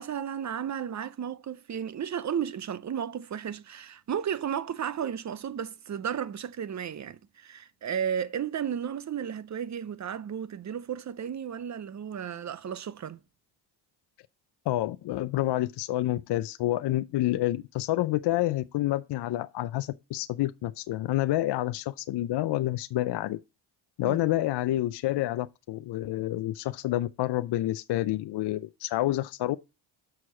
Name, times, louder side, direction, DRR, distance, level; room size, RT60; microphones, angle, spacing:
voice 1, 0.0-13.2 24.0-24.2, right 8 dB, 35° right, 0.7 m, -33 dB
voice 2, 14.7-23.4 24.0-29.6, left 15 dB, 60° left, 0.6 m, -28 dB
6.3 x 4.7 x 5.8 m
supercardioid pair, 65°, 47 cm